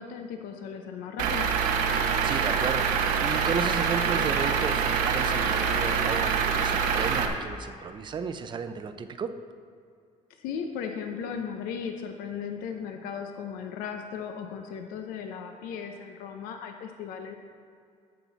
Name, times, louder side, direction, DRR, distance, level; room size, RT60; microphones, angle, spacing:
voice 1, 0.0-1.5 10.3-17.3, left 7 dB, 90° left, 5 dB, 0.8 m, -36 dB
Truck / Idling, 1.2-7.3, right 6 dB, 85° right, 0.9 m, -25 dB
voice 2, 1.9-9.3, right 6 dB, 35° right, 9 dB, 0.5 m, -34 dB
14.0 x 6.0 x 4.0 m, 2.3 s
cardioid pair, 130°, 14 cm